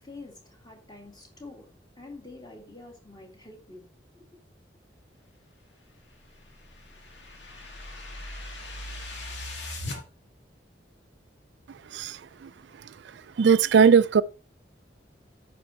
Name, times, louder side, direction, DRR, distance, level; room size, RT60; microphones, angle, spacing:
voice 1, 0.0-3.8 4.1-4.4, left 2 dB, 20° left, 2.5 m, -47 dB
sound 1, 6.0-10.0, left 1 dB, 70° left, 2.1 m, -39 dB
voice 2, 11.9-12.5 13.4-14.2, right 6 dB, 70° right, 0.4 m, -19 dB
9.0 x 6.4 x 4.6 m
head